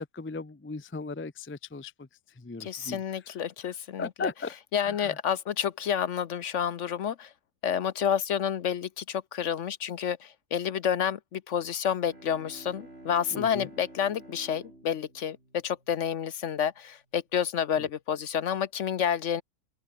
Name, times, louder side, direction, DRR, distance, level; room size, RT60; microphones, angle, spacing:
voice 1, 0.0-2.1 2.4-3.0 4.0-4.6 4.8-5.2 13.3-13.7 17.8-17.9, left 4 dB, 15° left, 0.5 m, -37 dB
voice 2, 2.6-4.3 4.7-7.3 7.6-19.4, left 8 dB, 60° left, 1.0 m, -29 dB
Bowed string instrument, 11.8-16.5, right 1 dB, 45° right, 7.1 m, -51 dB
open air
omnidirectional pair, 1.6 m